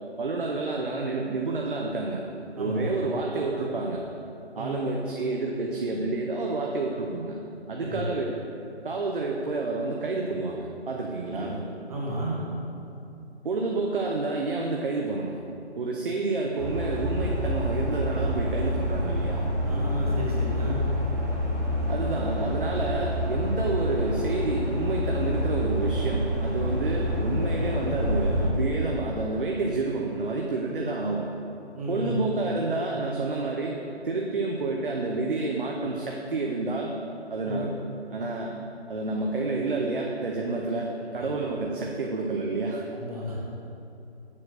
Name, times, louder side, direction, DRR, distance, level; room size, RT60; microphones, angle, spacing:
voice 1, 0.2-2.3 2.5-4.0 4.6-7.4 7.7-8.3 8.8-11.5 13.4-15.4 15.7-19.4 21.9-31.3 31.9-33.8 34.0-36.9 37.3-37.7 38.1-38.5 38.9-42.8, right 3 dB, 55° right, 0 dB, 0.7 m, -29 dB
voice 2, 2.6-2.9 4.6-4.8 7.8-8.1 11.3-11.5 11.9-12.4 19.7-20.9 31.7-32.1 37.4-37.6 42.9-43.4, right 1 dB, 35° right, -5 dB, 1.4 m, -33 dB
sound 1, 16.6-28.5, equal, 15° right, 0.6 m, -27 dB
7.4 x 4.5 x 6.3 m, 2.7 s
hypercardioid pair, 170°, 33 cm